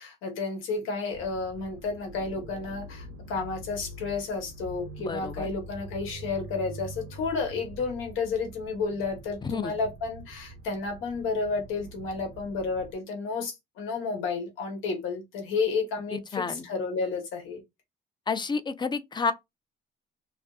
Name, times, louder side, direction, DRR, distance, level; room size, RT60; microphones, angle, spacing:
voice 1, 0.0-17.6, left 4 dB, 90° left, 1.0 m, -31 dB
sound 1, 1.1-12.9, right 1 dB, 90° right, 0.6 m, -44 dB
voice 2, 5.0-5.5 9.4-9.7 16.1-16.6 18.3-19.3, left 5 dB, 20° left, 0.4 m, -30 dB
2.5 x 2.4 x 2.3 m
cardioid pair, 90°, 20 cm